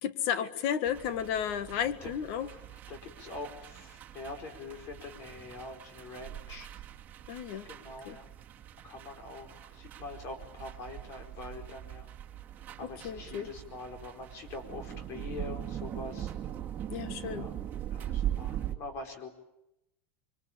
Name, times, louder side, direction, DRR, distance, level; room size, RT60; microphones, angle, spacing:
voice 1, 0.0-2.5 7.3-7.7 8.1-8.2 12.8-13.5 16.9-17.5, left 9 dB, 55° left, 12 dB, 1.7 m, -33 dB
sound 1, 0.8-18.7, right 11 dB, 25° right, 2.3 m, -41 dB
voice 2, 2.5-6.7 7.6-8.3 8.8-12.1 12.9-16.3 17.2-17.6 17.8-19.3, left 3 dB, 40° left, 4 dB, 4.7 m, -44 dB
25.5 x 23.5 x 8.8 m, 0.88 s
supercardioid pair, 155°, 7 cm